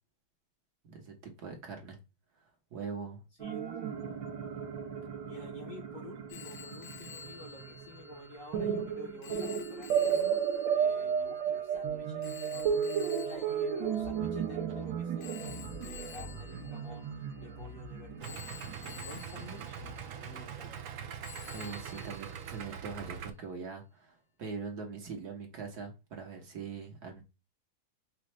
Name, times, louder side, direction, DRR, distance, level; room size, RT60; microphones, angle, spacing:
voice 1, 0.9-2.0 2.7-3.2 21.5-27.2, right 5 dB, 60° right, 1.6 m, -42 dB
voice 2, 3.4-4.2 5.3-10.4 10.7-12.8 13.2-17.1 17.4-19.8 20.1-20.7, left 1 dB, 55° left, 1.1 m, -50 dB
sound 1, 3.4-20.1, right 7 dB, 90° right, 1.6 m, -34 dB
Telephone, 6.3-14.6 15.2-17.7 18.2-20.9 21.2-22.9, left 7 dB, 85° left, 1.5 m, -51 dB
Idling, 18.2-23.3, right 8 dB, 75° right, 0.7 m, -43 dB
5.4 x 2.5 x 3.0 m
omnidirectional pair, 2.1 m